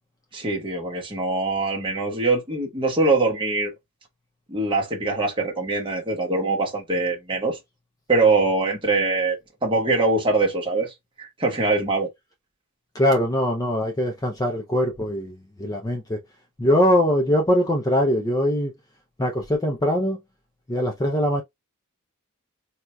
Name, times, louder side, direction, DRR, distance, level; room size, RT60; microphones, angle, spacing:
voice 1, 0.3-3.7 4.5-7.6 8.1-12.1, right 3 dB, 25° right, 1.1 m, -23 dB
voice 2, 12.9-16.2 16.6-18.7 19.2-20.2 20.7-21.4, equal, 15° left, 0.5 m, -22 dB
4.2 x 2.4 x 2.2 m
head